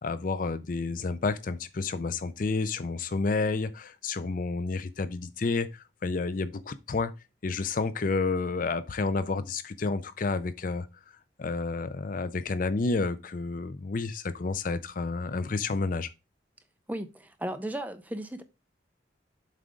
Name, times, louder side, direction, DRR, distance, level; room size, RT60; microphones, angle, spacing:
voice 1, 0.0-7.1 7.4-10.9 11.4-16.1, left 3 dB, 45° left, 0.4 m, -30 dB
voice 2, 16.9-18.4, right 1 dB, 10° right, 0.7 m, -35 dB
7.5 x 3.5 x 5.0 m
head